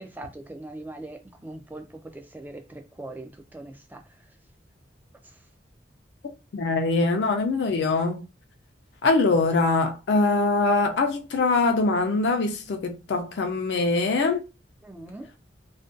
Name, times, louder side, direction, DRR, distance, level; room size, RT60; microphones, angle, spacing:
voice 1, 0.0-4.0 14.8-15.3, right 2 dB, 10° right, 0.3 m, -41 dB
voice 2, 6.5-8.2 9.0-14.4, left 3 dB, 70° left, 0.4 m, -23 dB
2.4 x 2.2 x 2.4 m
head